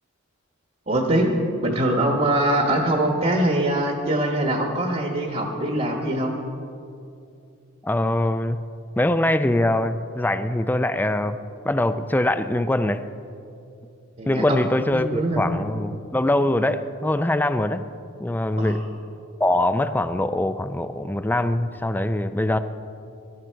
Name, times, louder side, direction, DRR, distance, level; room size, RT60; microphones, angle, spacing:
voice 1, 0.9-1.3 1.6-6.4 14.2-14.6 14.9-15.4 18.6-18.8, right 1 dB, 35° right, 2 dB, 1.2 m, -23 dB
voice 2, 7.8-8.6 9.0-11.4 11.6-13.0 14.3-17.8 18.2-18.8 19.4-22.6, left 1 dB, 10° left, 11 dB, 0.3 m, -23 dB
18.5 x 12.0 x 4.6 m, 2.7 s
head